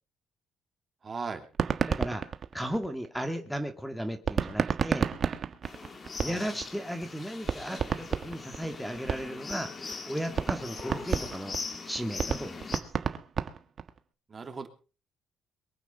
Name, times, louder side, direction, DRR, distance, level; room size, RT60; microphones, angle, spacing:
voice 1, 1.0-1.4 6.2-6.4 14.3-14.7, right 4 dB, 35° right, 6 dB, 3.0 m, -37 dB
sound 1, 1.4-3.3 4.3-6.7 7.0-7.1 7.4-9.5 9.9-10.0 10.3-14.0, right 7 dB, 55° right, 1.5 m, -30 dB
voice 2, 1.8-2.2 2.5-5.1 6.2-9.7 10.1-11.6 11.9-12.9, equal, ahead, 7 dB, 2.2 m, -35 dB
sound 2, 5.6-12.8, left 4 dB, 40° left, 2.8 m, -41 dB
23.0 x 9.1 x 5.2 m, 0.37 s
cardioid pair, 90°, 0 cm